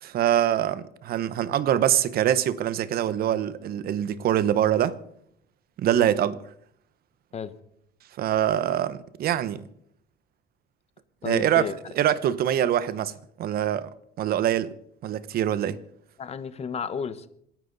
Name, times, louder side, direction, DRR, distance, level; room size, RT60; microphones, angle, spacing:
voice 1, 0.0-5.0 5.8-6.4 8.2-9.6 11.2-11.7 12.0-13.1 13.4-13.9 14.2-14.7 15.0-15.8, right 11 dB, 65° right, 1.0 m, -24 dB
voice 2, 11.2-11.7 16.2-17.3, left 6 dB, 40° left, 1.2 m, -32 dB
27.0 x 10.5 x 4.1 m
cardioid pair, 110°, 17 cm